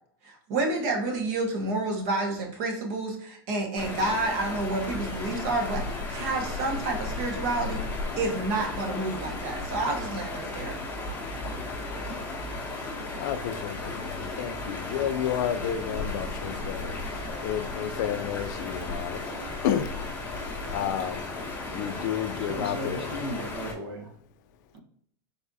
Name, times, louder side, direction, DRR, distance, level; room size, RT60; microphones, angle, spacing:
voice 1, 0.2-10.7, right 2 dB, 45° right, 1.0 m, -29 dB
sound 1, 3.8-23.7, left 2 dB, 15° left, 0.9 m, -35 dB
voice 2, 13.1-16.9 17.4-19.2 19.6-19.9 20.6-21.3 21.7-23.2, left 9 dB, 50° left, 0.4 m, -31 dB
voice 3, 22.3-24.1 24.7-24.8, equal, 80° right, 1.1 m, -36 dB
4.0 x 3.5 x 2.7 m
supercardioid pair, 175°, 13 cm